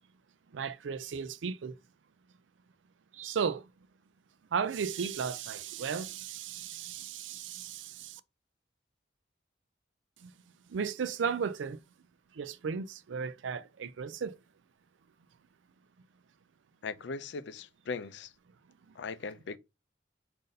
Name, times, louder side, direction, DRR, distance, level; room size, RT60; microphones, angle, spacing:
voice 1, 0.5-1.8 3.1-3.7 4.5-8.2 10.2-10.3 10.7-11.8 12.3-14.4, right 6 dB, 85° right, 0.4 m, -35 dB
voice 2, 16.8-18.3 19.0-19.6, left 4 dB, 70° left, 0.4 m, -39 dB
5.2 x 2.6 x 3.8 m
head